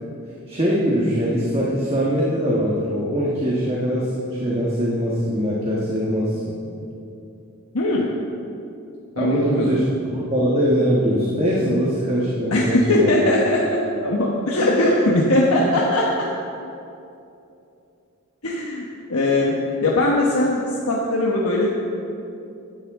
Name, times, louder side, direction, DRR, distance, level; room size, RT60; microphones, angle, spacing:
voice 1, 0.5-6.5 9.2-9.8 10.1-13.2, equal, 25° right, -5 dB, 1.4 m, -22 dB
voice 2, 7.7-8.1 9.2-9.8 12.5-16.1 18.4-18.8 19.1-19.5 19.8-21.7, left 1 dB, 75° left, -3 dB, 1.2 m, -20 dB
15.0 x 11.0 x 3.7 m, 2.7 s
head